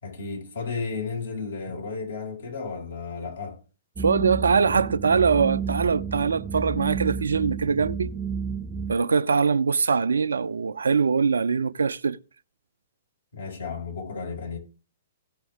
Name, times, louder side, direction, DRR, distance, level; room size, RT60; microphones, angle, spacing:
voice 1, 0.0-3.6 13.3-14.6, left 4 dB, 70° left, 5.6 m, -33 dB
sound 1, 4.0-9.0, right 6 dB, 15° right, 0.7 m, -31 dB
voice 2, 4.0-8.1 8.9-12.2, right 5 dB, 75° right, 0.6 m, -22 dB
17.0 x 6.9 x 3.6 m
figure-of-eight pair, 115°, 0 cm